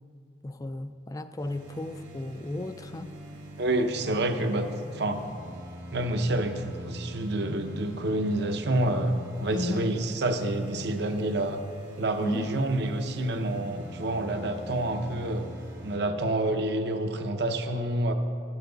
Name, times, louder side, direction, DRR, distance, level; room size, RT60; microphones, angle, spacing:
voice 1, 0.4-3.1 9.5-9.9 12.2-12.6, left 2 dB, 20° left, 10 dB, 0.4 m, -34 dB
sound 1, 1.4-16.0, equal, 75° right, 1.9 m, -43 dB
voice 2, 3.6-4.7 4.9-5.2 5.9-11.6 12.0-15.5 15.8-18.1, right 1 dB, 60° right, 7 dB, 0.8 m, -28 dB
14.0 x 10.0 x 3.9 m, 2.4 s
head